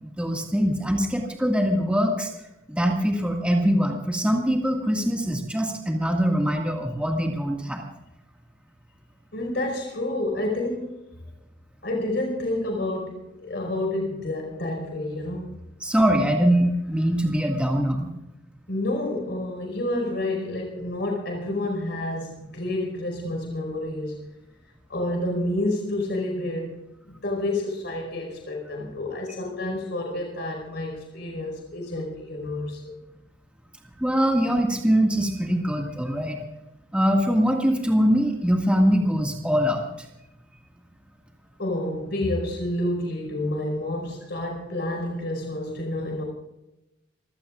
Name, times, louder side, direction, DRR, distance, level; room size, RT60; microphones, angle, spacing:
voice 1, 0.0-2.3 2.7-7.9 15.8-18.1 34.0-36.4 36.9-40.1, equal, 5° right, 0 dB, 2.0 m, -23 dB
voice 2, 9.3-10.9 11.8-15.5 18.7-24.3 24.9-26.8 27.1-33.0 41.6-46.2, left 1 dB, 60° left, 1 dB, 5.1 m, -29 dB
28.0 x 16.5 x 2.5 m, 0.93 s
head